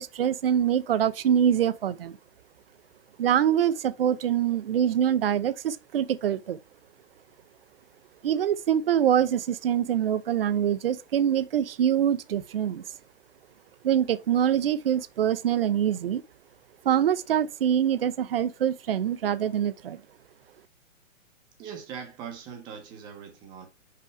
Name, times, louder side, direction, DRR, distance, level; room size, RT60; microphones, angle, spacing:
voice 1, 0.0-2.2 3.2-6.6 8.2-12.8 13.8-16.2 16.8-20.0, right 9 dB, 50° right, 0.7 m, -24 dB
voice 2, 21.6-23.7, right 7 dB, 10° right, 0.8 m, -41 dB
5.6 x 5.2 x 3.3 m
hypercardioid pair, 165°, 39 cm